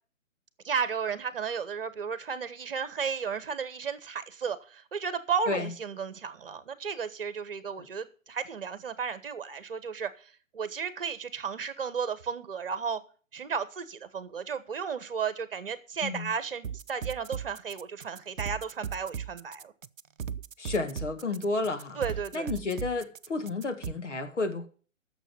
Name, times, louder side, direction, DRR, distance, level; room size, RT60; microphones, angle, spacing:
voice 1, 0.6-13.0 13.3-19.7 21.9-22.6, right 6 dB, 45° right, 1.2 m, -34 dB
sound 1, 16.6-23.9, right 8 dB, 75° right, 0.6 m, -37 dB
voice 2, 20.6-22.0 22.3-24.7, left 3 dB, 65° left, 2.0 m, -31 dB
8.9 x 7.0 x 8.8 m
figure-of-eight pair, 135°, 39 cm